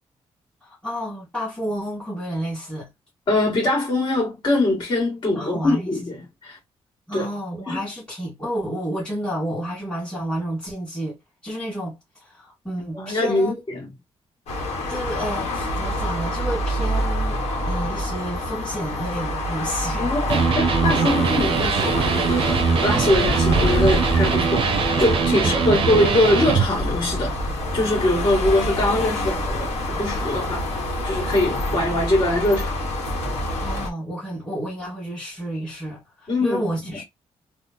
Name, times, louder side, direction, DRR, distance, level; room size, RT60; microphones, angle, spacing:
voice 1, 0.6-2.9 5.3-5.9 7.1-13.6 14.9-20.1 25.3-25.8 33.6-37.0, equal, 5° left, 1.9 m, -30 dB
voice 2, 3.3-6.6 7.1-7.3 7.7-7.8 12.9-13.9 20.0-24.7 25.0-27.4 27.7-30.6 31.0-32.8 36.3-37.0, left 1 dB, 45° left, 2.0 m, -23 dB
sound 1, 14.5-33.9, left 1 dB, 75° left, 1.2 m, -26 dB
Electric guitar, 20.3-26.7, right 6 dB, 55° right, 0.5 m, -22 dB
3.6 x 2.3 x 2.8 m
wide cardioid pair, 175°, 11 cm